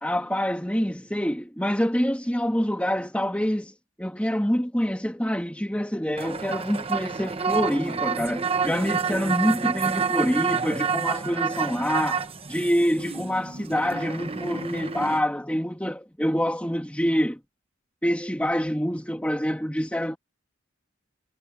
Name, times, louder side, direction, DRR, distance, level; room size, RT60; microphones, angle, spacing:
voice 1, 0.0-3.7 4.0-17.4 18.0-20.2, equal, 5° left, 2.7 m, -26 dB
sound 1, 6.2-15.2, right 6 dB, 30° right, 1.0 m, -29 dB
head